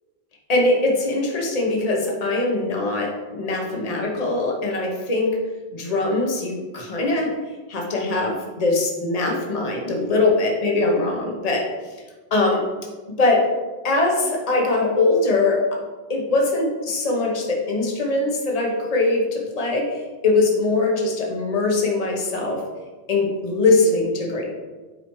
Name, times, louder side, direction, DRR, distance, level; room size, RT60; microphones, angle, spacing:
voice 1, 0.5-5.4 5.7-7.3 7.7-11.9 12.3-12.7 13.2-13.5 13.8-15.8 16.1-22.7 23.1-24.5, left 2 dB, 40° left, 0 dB, 1.1 m, -22 dB
8.9 x 4.9 x 3.1 m, 1.3 s
omnidirectional pair, 1.0 m